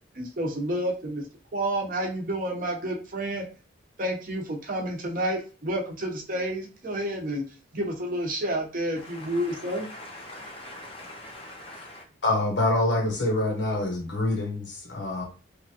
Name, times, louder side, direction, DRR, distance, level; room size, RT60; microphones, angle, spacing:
voice 1, 0.1-1.2 1.5-3.4 4.0-7.4 7.7-9.9, right 1 dB, 45° right, 0.7 m, -30 dB
voice 2, 9.0-12.0, left 1 dB, 30° left, 0.6 m, -43 dB
voice 3, 12.2-15.2, left 2 dB, 70° left, 0.7 m, -26 dB
3.0 x 2.4 x 2.7 m
head